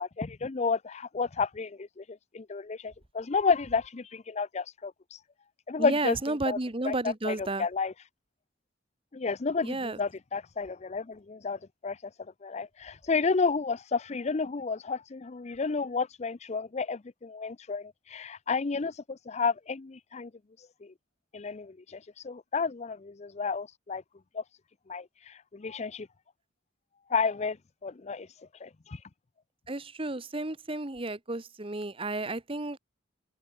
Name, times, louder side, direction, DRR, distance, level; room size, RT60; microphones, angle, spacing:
voice 1, 0.0-4.9 5.7-6.6 6.8-7.9 9.1-12.0 12.4-20.3 20.8-20.9 21.3-22.0 22.2-24.0 24.3-24.4 24.9-26.1 27.1-27.6 27.8-28.3 28.6-29.0, left 4 dB, 35° left, 0.5 m, -31 dB
voice 2, 5.8-7.6 9.6-10.0 29.7-32.8, right 2 dB, 30° right, 1.3 m, -32 dB
head